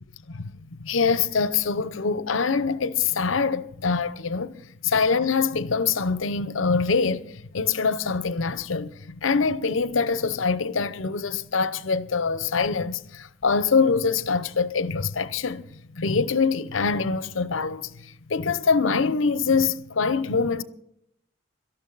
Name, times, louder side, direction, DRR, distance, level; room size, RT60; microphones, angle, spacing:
voice 1, 0.8-15.7 15.9-20.6, left 5 dB, 80° left, 0.8 m, -24 dB
18.0 x 13.0 x 4.0 m
head